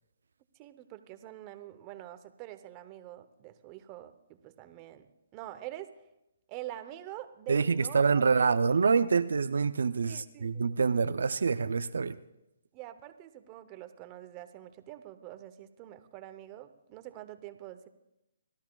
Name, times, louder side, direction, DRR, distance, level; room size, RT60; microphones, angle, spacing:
voice 1, 0.6-5.1 5.3-6.0 6.5-8.8 10.1-11.0 12.7-17.9, right 13 dB, 25° right, 10 dB, 0.8 m, -46 dB
voice 2, 7.5-12.2, right 5 dB, 80° right, 12 dB, 0.5 m, -26 dB
28.0 x 13.0 x 2.3 m, 0.90 s
hypercardioid pair, 150°, 0 cm